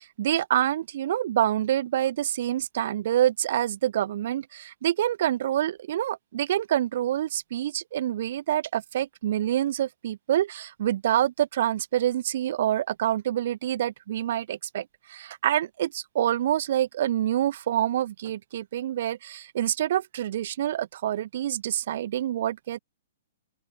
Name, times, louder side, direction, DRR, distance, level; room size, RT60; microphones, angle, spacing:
voice 1, 0.0-22.8, right 12 dB, 55° right, 0.5 m, -27 dB
open air
hypercardioid pair, 145°, 0 cm